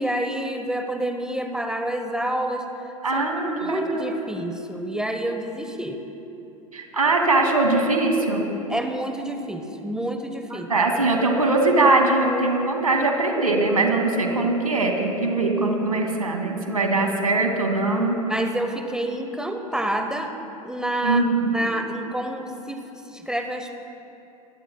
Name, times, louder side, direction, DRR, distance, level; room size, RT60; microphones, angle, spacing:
voice 1, 0.0-2.7 3.1-6.0 8.7-10.7 18.3-20.4 20.6-21.2 21.5-22.8 23.1-23.7, right 1 dB, 5° right, 6 dB, 1.0 m, -28 dB
voice 2, 3.0-4.0 6.7-8.5 10.5-18.2 21.0-21.6, right 2 dB, 80° right, 2 dB, 2.3 m, -21 dB
26.5 x 20.5 x 2.3 m, 3.0 s
figure-of-eight pair, 90°, 18 cm